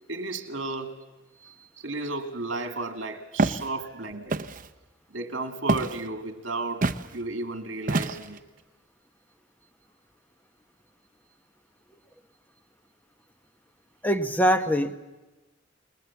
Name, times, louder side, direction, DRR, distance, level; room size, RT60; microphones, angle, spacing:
voice 1, 0.1-0.9 1.8-4.4 5.1-8.4, right 2 dB, 80° right, 2.4 m, -33 dB
Walk footsteps, 3.4-3.7 4.3-4.7 5.7-6.0 6.8-7.1 7.9-8.4, right 3 dB, 45° right, 0.8 m, -26 dB
voice 2, 14.0-14.9, equal, 10° left, 1.2 m, -23 dB
29.0 x 20.5 x 7.2 m
head